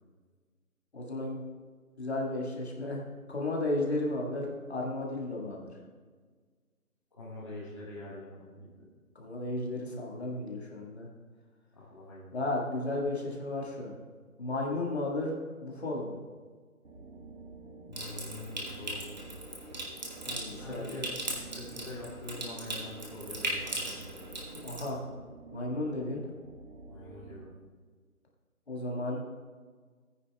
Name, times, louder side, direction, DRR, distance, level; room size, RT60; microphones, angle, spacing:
voice 1, 0.9-1.4 2.0-3.0 3.3-5.7 9.1-11.1 12.3-13.9 14.4-16.2 20.2-21.0 24.6-25.0 25.5-26.2 28.7-29.2, left 2 dB, 45° left, -2 dB, 1.8 m, -34 dB
voice 2, 7.1-8.9 11.7-12.3 17.9-19.3 20.6-21.1 21.5-24.1 26.9-27.5, left 1 dB, 20° left, -8 dB, 1.6 m, -44 dB
sound 1, 16.8-27.5, right 3 dB, 60° right, 1.7 m, -49 dB
Water tap faucet / Sink (filling or washing) / Trickle dribble, 17.9-24.9, right 1 dB, 30° right, 1.5 m, -39 dB
16.5 x 9.5 x 2.3 m, 1.5 s
figure-of-eight pair, 175°, 44 cm